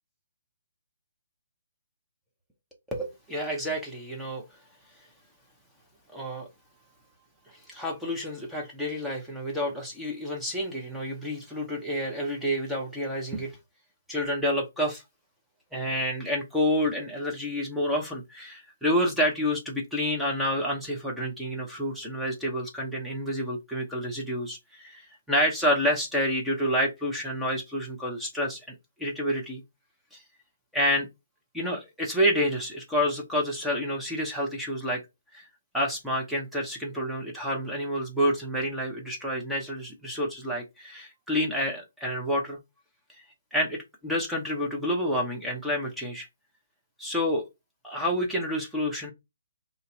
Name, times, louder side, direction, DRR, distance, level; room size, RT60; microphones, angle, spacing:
voice 1, 2.9-4.4 6.1-6.5 7.7-13.5 14.1-15.0 15.7-29.6 30.1-30.2 30.7-31.1 31.5-35.0 35.3-35.5 35.7-42.6 43.5-46.3 47.0-47.4 47.8-49.1, equal, ahead, 0.8 m, -29 dB
2.6 x 2.2 x 3.8 m
figure-of-eight pair, 145°, 0 cm